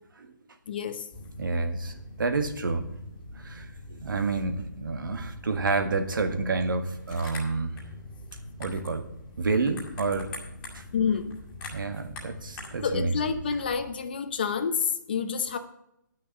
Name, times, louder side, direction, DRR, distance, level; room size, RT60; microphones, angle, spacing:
voice 1, 0.7-1.1 10.9-11.4 12.8-15.6, left 6 dB, 30° left, 9 dB, 0.8 m, -28 dB
sound 1, 1.1-13.9, left 1 dB, 10° left, 1.9 m, -43 dB
voice 2, 1.4-2.9 3.4-7.8 8.6-9.1 9.4-10.3 10.7-10.8 11.7-13.1, right 3 dB, 85° right, 7 dB, 1.8 m, -29 dB
10.5 x 6.3 x 7.1 m, 0.79 s
hypercardioid pair, 180°, 11 cm